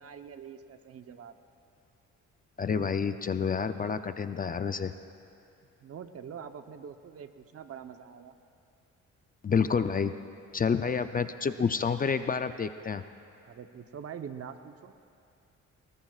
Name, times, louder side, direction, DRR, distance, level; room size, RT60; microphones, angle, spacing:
voice 1, 0.0-1.4 5.8-8.3 13.4-14.9, right 7 dB, 50° right, 8 dB, 0.9 m, -44 dB
voice 2, 2.6-4.9 9.4-10.1 10.5-13.0, left 6 dB, 30° left, 10 dB, 0.5 m, -29 dB
23.5 x 20.0 x 2.4 m, 2.6 s
cardioid pair, 90°, 30 cm